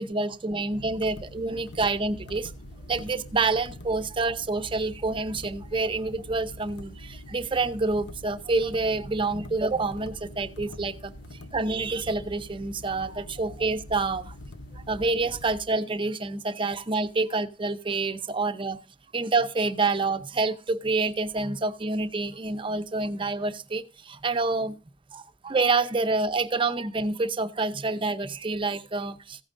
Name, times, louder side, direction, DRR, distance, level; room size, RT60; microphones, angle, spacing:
voice 1, 0.0-2.5 2.9-11.1 11.5-14.3 14.7-18.8 19.1-24.8 25.1-29.4, right 3 dB, 30° right, 9 dB, 0.7 m, -27 dB
sound 1, 0.7-15.6, left 1 dB, 80° left, 0.9 m, -44 dB
15.5 x 8.7 x 2.6 m, 0.33 s
head